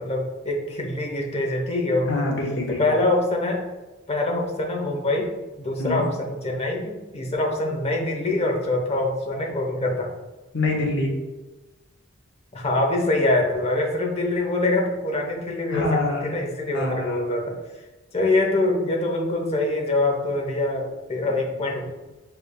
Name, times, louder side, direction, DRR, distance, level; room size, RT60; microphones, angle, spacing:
voice 1, 0.0-2.1 2.8-3.6 4.1-5.3 5.6-10.1 12.5-16.0 16.3-17.5 18.1-21.8, left 2 dB, 30° left, 1 dB, 0.9 m, -24 dB
voice 2, 2.0-2.8 5.8-6.1 10.5-11.1 15.7-16.4 16.7-17.2, left 2 dB, 65° left, 0 dB, 1.1 m, -25 dB
6.7 x 3.4 x 2.2 m, 1.1 s
head